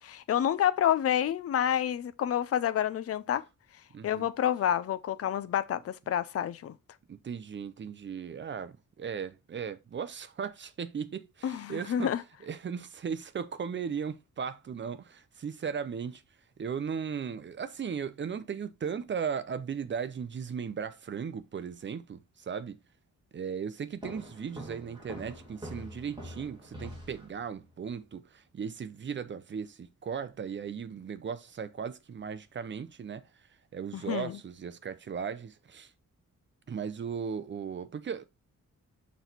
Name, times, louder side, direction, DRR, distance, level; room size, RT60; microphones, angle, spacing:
voice 1, 0.0-3.4 4.0-6.7 11.4-12.2 33.9-34.4, left 10 dB, 50° left, 0.5 m, -28 dB
voice 2, 3.9-4.3 7.1-12.1 12.4-16.2 16.6-22.8 23.3-33.3 33.7-35.9 36.7-38.3, right 7 dB, 35° right, 0.6 m, -37 dB
sound 1, 24.0-27.7, equal, 15° right, 2.5 m, -44 dB
6.2 x 4.1 x 4.4 m
wide cardioid pair, 170°, 32 cm